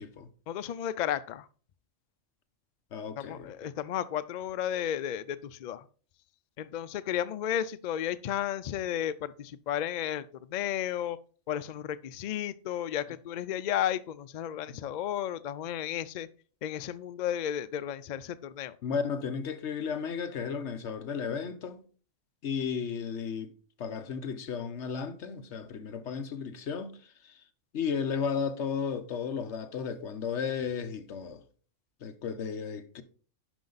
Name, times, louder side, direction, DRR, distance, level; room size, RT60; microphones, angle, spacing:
voice 1, 0.5-1.5 3.2-5.9 6.6-11.2 11.5-16.3 16.6-18.8, left 10 dB, 80° left, 0.4 m, -33 dB
voice 2, 2.9-3.7 14.7-14.8 18.8-21.8 22.4-27.4 27.7-31.4 32.0-33.0, left 6 dB, 65° left, 1.1 m, -34 dB
11.0 x 5.2 x 3.9 m
omnidirectional pair, 1.3 m